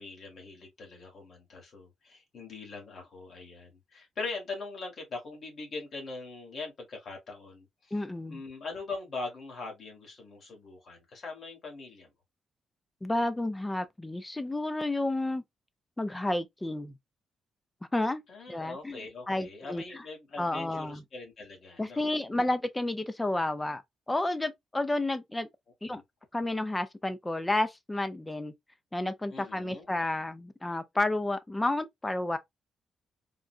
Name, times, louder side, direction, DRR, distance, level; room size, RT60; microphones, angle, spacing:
voice 1, 0.0-8.0 8.3-12.1 18.3-22.0 25.8-26.0 29.3-29.9, left 3 dB, 40° left, 1.3 m, -42 dB
voice 2, 7.9-8.4 13.0-15.4 16.0-16.9 17.9-18.2 18.5-19.0 19.3-20.0 20.4-21.0 21.8-23.8 24.1-25.5 25.8-26.0 26.3-28.5 28.9-32.4, left 2 dB, 10° left, 0.3 m, -31 dB
3.7 x 2.2 x 2.4 m
cardioid pair, 175°, 0 cm